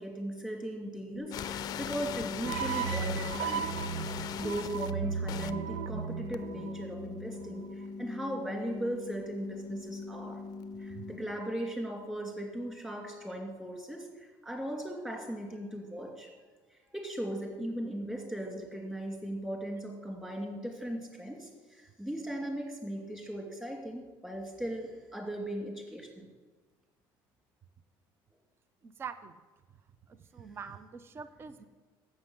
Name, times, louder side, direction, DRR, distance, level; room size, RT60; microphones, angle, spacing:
voice 1, 0.0-3.7 4.1-10.4 10.8-16.3 16.9-26.3, right 1 dB, 10° right, 0 dB, 2.6 m, -38 dB
sound 1, 1.1-11.1, left 3 dB, 40° right, 4.3 m, -43 dB
sound 2, 1.3-4.9 5.3-5.5 6.3-6.4 10.6-10.7, left 11 dB, 45° left, 0.5 m, -39 dB
sound 3, 2.4-7.7, right 7 dB, 70° right, 0.5 m, -36 dB
voice 2, 28.8-29.4 30.1-31.6, right 6 dB, 25° right, 12 dB, 0.6 m, -44 dB
11.5 x 7.8 x 8.1 m, 1.3 s
cardioid pair, 155°, 9 cm